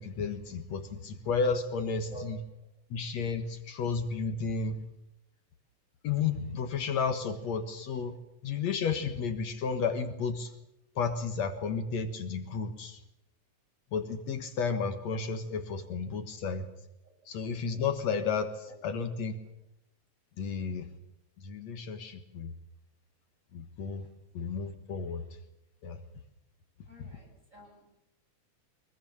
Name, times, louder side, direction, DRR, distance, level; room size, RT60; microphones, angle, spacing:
voice 1, 0.0-2.4 2.9-4.8 6.0-8.2 8.4-10.5 11.0-13.0 13.9-16.7 17.3-19.4 20.4-20.9 21.4-22.5 23.5-24.1 24.3-25.2 25.8-26.0, left 5 dB, 70° left, 8 dB, 2.6 m, -32 dB
voice 2, 26.9-28.0, right 3 dB, 25° right, 1 dB, 8.2 m, -49 dB
24.5 x 21.5 x 7.3 m, 0.86 s
omnidirectional pair, 3.3 m